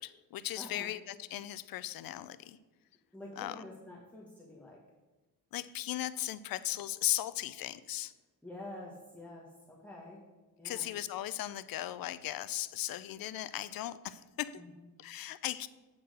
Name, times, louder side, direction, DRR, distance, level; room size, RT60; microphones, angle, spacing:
voice 1, 0.0-2.6 3.4-3.6 5.5-8.1 10.6-14.6 15.0-15.7, left 13 dB, 70° left, 15 dB, 0.5 m, -37 dB
voice 2, 0.6-0.9 3.1-4.8 8.4-10.2 10.6-10.9 14.6-14.8, left 1 dB, 5° left, -4 dB, 1.2 m, -48 dB
8.5 x 4.5 x 6.3 m, 1.2 s
wide cardioid pair, 160°, 36 cm